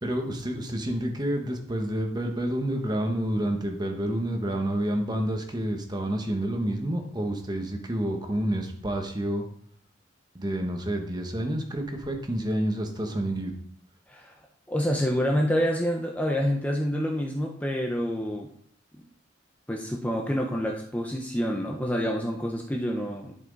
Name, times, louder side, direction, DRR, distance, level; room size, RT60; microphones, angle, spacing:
voice 1, 0.0-9.4 10.3-13.5, right 1 dB, 20° right, 3 dB, 1.2 m, -29 dB
voice 2, 14.7-18.5 18.9-19.0 19.7-23.3, equal, 10° left, 0 dB, 0.8 m, -27 dB
11.0 x 5.9 x 4.0 m, 0.64 s
head